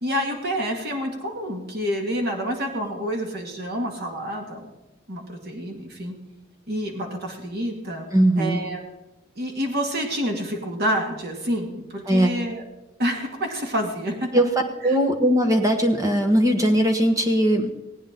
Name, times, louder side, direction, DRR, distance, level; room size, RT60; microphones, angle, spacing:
voice 1, 0.0-4.7 5.1-6.1 6.7-8.1 8.4-8.8 9.4-12.6 13.0-14.3 14.8-15.0, equal, 55° right, 1 dB, 2.2 m, -28 dB
voice 2, 8.1-8.6 12.1-12.3 14.3-14.5 14.8-17.8, equal, 15° right, 5 dB, 1.3 m, -19 dB
18.5 x 9.4 x 3.8 m, 0.99 s
head